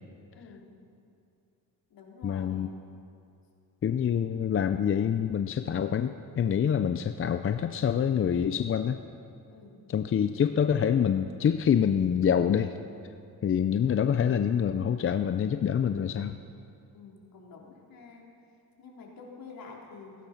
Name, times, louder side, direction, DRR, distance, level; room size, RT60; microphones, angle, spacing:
voice 1, 0.3-0.7 1.9-2.8 9.5-9.8 16.9-18.3 18.8-20.2, left 4 dB, 60° left, -2 dB, 3.5 m, -48 dB
voice 2, 2.2-2.7 3.8-9.0 9.9-12.7 13.4-16.4, left 8 dB, 35° left, 9 dB, 0.5 m, -26 dB
16.0 x 15.5 x 5.8 m, 2.5 s
cardioid pair, 100°, 40 cm